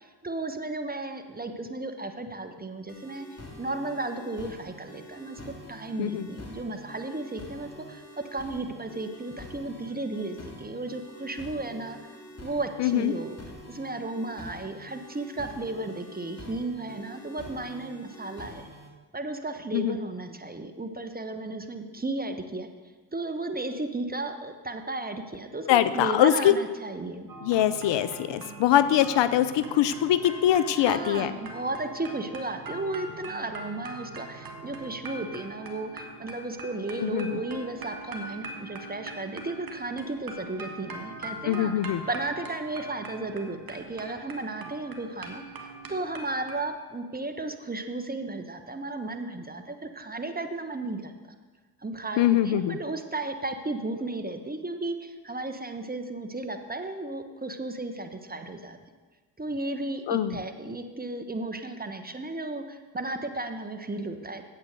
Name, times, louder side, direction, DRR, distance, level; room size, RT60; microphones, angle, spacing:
voice 1, 0.0-3.3 3.6-5.4 5.7-8.0 8.3-13.4 13.7-18.7 19.1-22.7 23.1-27.3 30.7-41.7 42.1-51.1 51.8-58.8 59.4-64.4, right 2 dB, 20° right, 8 dB, 1.2 m, -34 dB
sound 1, 2.9-18.9, left 1 dB, 30° left, 2.3 m, -46 dB
voice 2, 12.8-13.1 19.7-20.0 25.7-26.5 27.4-31.3 37.0-37.4 41.5-42.0 52.2-52.8 60.1-60.4, left 11 dB, 60° left, 13 dB, 0.6 m, -23 dB
sound 2, 27.3-46.7, right 2 dB, 45° right, 1.9 m, -42 dB
8.5 x 8.0 x 6.6 m, 1.4 s
hypercardioid pair, 45°, 50 cm